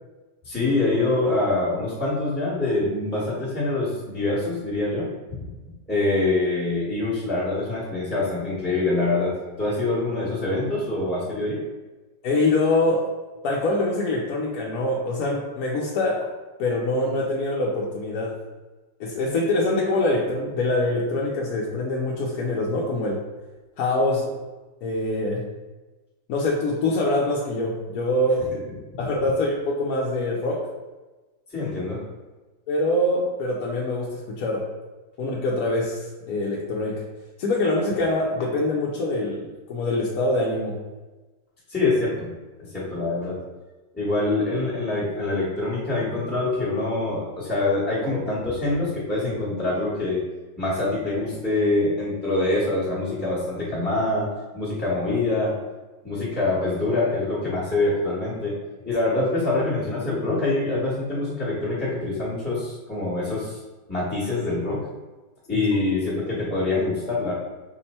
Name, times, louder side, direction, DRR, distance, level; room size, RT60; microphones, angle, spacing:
voice 1, 0.4-5.1 5.4-5.5 5.9-11.6 28.5-28.6 31.5-32.0 41.7-42.3 42.6-43.4 43.9-50.2 50.6-54.3 54.5-55.6 56.0-58.5 58.8-63.6 63.9-64.9 65.5-67.3, left 2 dB, 10° left, -10 dB, 0.8 m, -25 dB
voice 2, 12.2-13.1 13.4-16.2 16.6-18.4 19.0-23.2 23.8-24.4 24.8-25.4 26.3-28.4 29.0-30.6 32.7-34.7 35.2-37.0 37.4-40.8 65.5-65.7, left 2 dB, 70° left, -2 dB, 0.9 m, -24 dB
5.1 x 2.1 x 4.2 m, 1.2 s
omnidirectional pair, 2.1 m